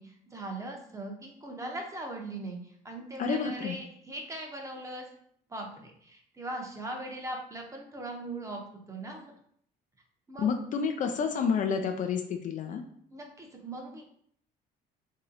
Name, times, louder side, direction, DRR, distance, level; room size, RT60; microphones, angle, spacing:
voice 1, 0.0-5.0 5.5-8.6 8.9-9.3 10.3-10.5 13.1-14.0, right 2 dB, 20° right, 1 dB, 0.8 m, -40 dB
voice 2, 3.2-3.8 10.4-12.8, left 6 dB, 50° left, 5 dB, 0.4 m, -29 dB
3.0 x 2.7 x 3.8 m, 0.65 s
cardioid pair, 110°, 17 cm